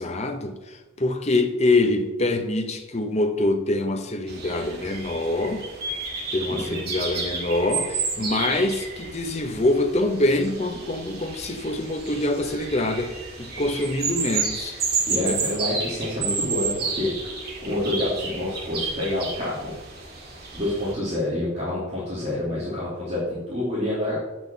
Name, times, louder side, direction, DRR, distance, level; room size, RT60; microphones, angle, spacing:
voice 1, 0.0-5.7 6.3-14.8 15.1-15.4, left 2 dB, 30° left, 6 dB, 0.9 m, -25 dB
sound 1, 4.3-20.9, right 4 dB, 45° right, 2.0 m, -31 dB
voice 2, 15.1-17.3 17.6-19.7 20.5-24.2, left 1 dB, 30° right, -8 dB, 2.8 m, -27 dB
7.4 x 6.1 x 7.3 m, 1.2 s
head